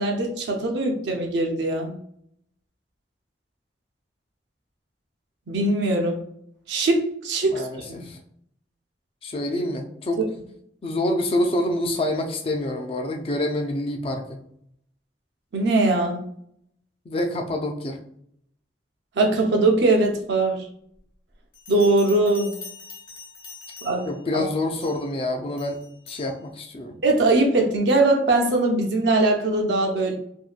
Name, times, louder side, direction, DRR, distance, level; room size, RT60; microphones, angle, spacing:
voice 1, 0.0-2.0 5.5-6.2 6.7-7.6 7.9-8.1 15.5-16.3 19.2-20.7 21.7-22.5 23.8-24.4 27.0-30.1, right 2 dB, 80° right, 2 dB, 0.5 m, -21 dB
voice 2, 7.4-8.2 9.2-10.2 10.8-14.4 17.1-18.0 24.1-25.8 26.1-26.9, left 1 dB, 30° left, 3 dB, 0.3 m, -27 dB
Bell, 21.5-24.2 24.8-25.1 25.6-26.3, left 5 dB, 50° left, 0.9 m, -43 dB
2.7 x 2.2 x 2.4 m, 0.69 s
head